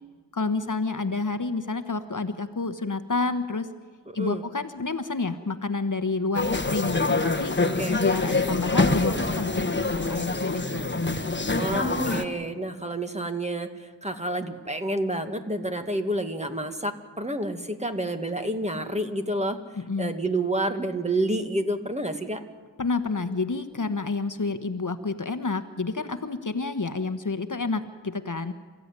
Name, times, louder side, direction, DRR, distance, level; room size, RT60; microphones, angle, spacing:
voice 1, 0.3-3.7 4.1-7.5 8.0-11.0 19.8-20.1 22.8-28.5, left 3 dB, 50° left, 9 dB, 1.2 m, -29 dB
voice 2, 4.1-4.4 7.6-8.0 11.5-19.6 20.0-22.4, right 1 dB, 15° right, 6 dB, 1.9 m, -29 dB
sound 1, 6.3-12.2, left 3 dB, 25° left, 1.3 m, -25 dB
28.5 x 15.0 x 9.7 m, 1.4 s
wide cardioid pair, 60°, 41 cm